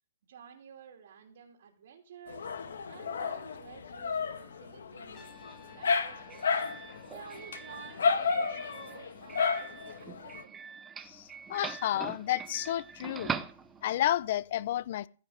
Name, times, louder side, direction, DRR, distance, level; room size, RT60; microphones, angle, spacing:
voice 1, 0.3-2.5 2.9-5.3 5.7-6.6 7.1-10.7, right 7 dB, 65° right, 3.0 m, -52 dB
Dog, 2.3-10.4, left 5 dB, 85° left, 2.0 m, -33 dB
Trumpet, 5.1-8.1, left 6 dB, 25° left, 3.4 m, -58 dB
Doorbell, 5.1-14.1, right 6 dB, 15° right, 0.7 m, -43 dB
voice 2, 11.0-13.3 13.8-15.1, left 12 dB, 50° left, 0.6 m, -31 dB
15.0 x 5.6 x 7.9 m
hypercardioid pair, 155°, 0 cm